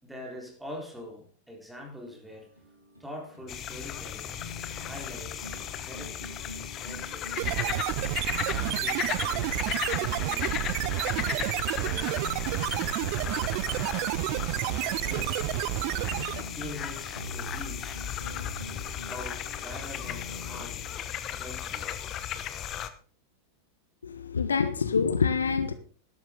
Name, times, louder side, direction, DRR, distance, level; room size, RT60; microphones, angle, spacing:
voice 1, 0.0-2.5 3.0-4.4 4.8-6.4 6.8-8.0 8.4-10.5 10.9-12.2 14.7-15.6 16.5-18.0 19.1-20.9 21.3-22.0, equal, 5° right, 4.2 m, -44 dB
sound 1, 1.9-2.0 2.3-20.9, left 1 dB, 90° left, 3.6 m, -45 dB
sound 2, 3.5-22.9, left 10 dB, 30° left, 1.1 m, -36 dB
sound 3, 7.4-16.5, right 18 dB, 45° right, 0.5 m, -30 dB
voice 2, 24.0-25.7, left 5 dB, 70° left, 0.9 m, -26 dB
12.5 x 12.5 x 3.8 m
figure-of-eight pair, 90°, 0 cm